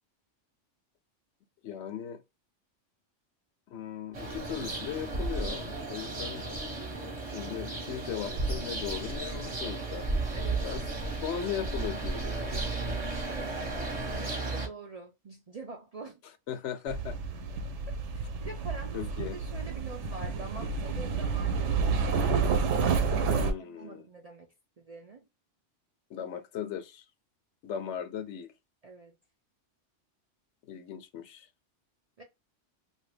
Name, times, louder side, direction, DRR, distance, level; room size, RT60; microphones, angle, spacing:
voice 1, 1.6-2.2 3.7-6.5 7.2-10.1 10.6-10.8 11.2-12.7 16.5-17.2 18.9-19.4 23.3-24.0 26.1-27.0 27.6-28.5 30.6-31.5, left 9 dB, 75° left, 0.9 m, -38 dB
sound 1, 4.1-14.7, right 2 dB, 35° right, 0.9 m, -34 dB
voice 2, 10.3-10.7 12.9-16.2 18.4-22.1 23.4-25.2 28.8-29.2 32.2-32.3, right 3 dB, 50° right, 0.4 m, -45 dB
trikk passerer v-h, 16.9-23.5, right 5 dB, 80° right, 0.9 m, -29 dB
2.7 x 2.7 x 3.2 m
omnidirectional pair, 1.2 m